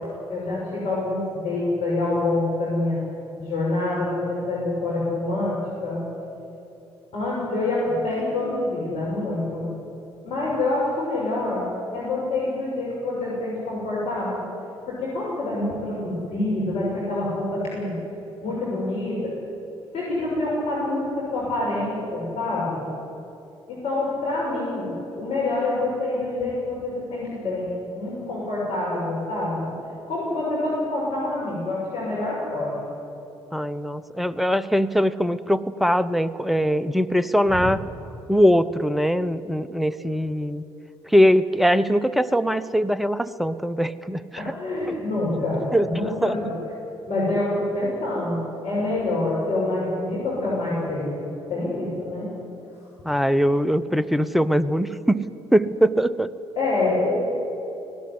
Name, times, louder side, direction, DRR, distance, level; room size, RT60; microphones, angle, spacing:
voice 1, 0.3-3.0 3.4-6.0 7.1-9.7 10.2-11.6 11.9-14.4 14.9-17.9 18.4-19.3 19.9-22.8 23.7-29.7 30.1-32.8 37.5-37.6 44.3-46.5 47.1-51.2 51.5-52.3 56.5-57.1, left 2 dB, 50° left, -7 dB, 6.6 m, -26 dB
voice 2, 33.5-37.8 38.3-40.6 41.1-44.4 44.9-45.0 45.7-45.9 46.2-46.3 53.0-55.3 55.5-56.3, equal, ahead, 15 dB, 0.9 m, -21 dB
18.0 x 18.0 x 9.8 m, 3.0 s
figure-of-eight pair, 45°, 14 cm